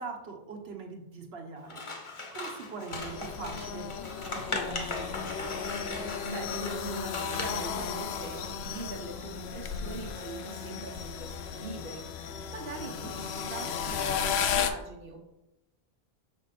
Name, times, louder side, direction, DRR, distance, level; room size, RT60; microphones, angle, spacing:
voice 1, 0.0-1.8 2.3-3.9 4.3-5.3 12.8-13.1, right 4 dB, 75° right, 1 dB, 1.3 m, -42 dB
Scissors, 1.7-7.8, left 3 dB, 30° left, 0.8 m, -39 dB
sound 1, 2.9-14.7, left 7 dB, 85° left, 0.9 m, -34 dB
voice 2, 6.3-15.3, right 3 dB, 60° right, 1 dB, 1.0 m, -42 dB
6.3 x 3.4 x 5.7 m, 0.93 s
omnidirectional pair, 1.0 m